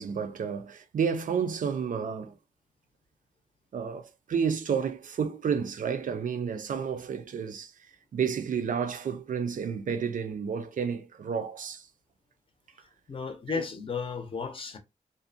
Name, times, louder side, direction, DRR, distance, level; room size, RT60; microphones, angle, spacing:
voice 1, 0.0-2.4 3.7-7.7 8.1-11.9 13.5-13.6, right 6 dB, 85° right, 0.4 m, -31 dB
voice 2, 13.1-14.8, left 5 dB, 40° left, 0.5 m, -34 dB
2.5 x 2.1 x 2.6 m
wide cardioid pair, 165°, 13 cm